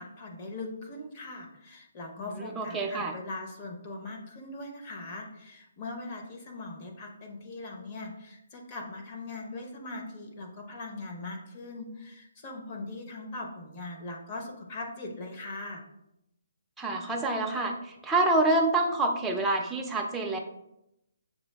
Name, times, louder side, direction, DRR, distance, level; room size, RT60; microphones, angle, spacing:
voice 1, 0.0-15.8, left 2 dB, 30° left, 1 dB, 0.7 m, -40 dB
voice 2, 2.2-3.1 16.8-20.4, right 2 dB, 5° right, 1 dB, 0.4 m, -27 dB
6.8 x 2.4 x 2.2 m, 0.84 s
hypercardioid pair, 155°, 0 cm